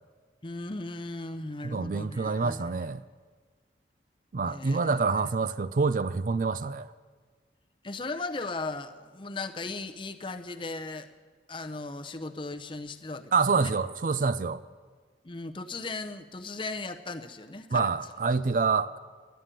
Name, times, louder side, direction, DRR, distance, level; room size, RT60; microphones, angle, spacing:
voice 1, 0.4-2.9 4.4-5.0 7.8-11.1 11.5-13.7 15.2-17.9, left 3 dB, 30° left, 0.7 m, -37 dB
voice 2, 1.6-3.0 4.3-6.9 13.3-14.6 17.7-19.0, right 4 dB, 45° right, 0.4 m, -27 dB
11.5 x 11.5 x 9.0 m
head